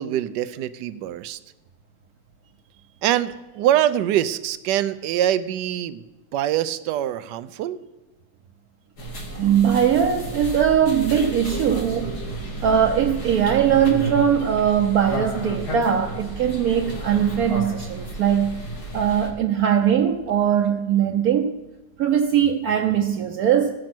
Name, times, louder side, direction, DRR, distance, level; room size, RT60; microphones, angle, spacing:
voice 1, 0.0-1.4 3.0-6.0 6.3-7.8, right 11 dB, 85° right, 1.2 m, -24 dB
sound 1, 9.0-19.3, right 1 dB, 65° left, 2.6 m, -32 dB
voice 2, 9.3-12.2 12.6-18.6 18.9-21.5 22.0-23.7, right 8 dB, 65° right, 1.1 m, -20 dB
14.5 x 6.4 x 6.0 m
omnidirectional pair, 1.8 m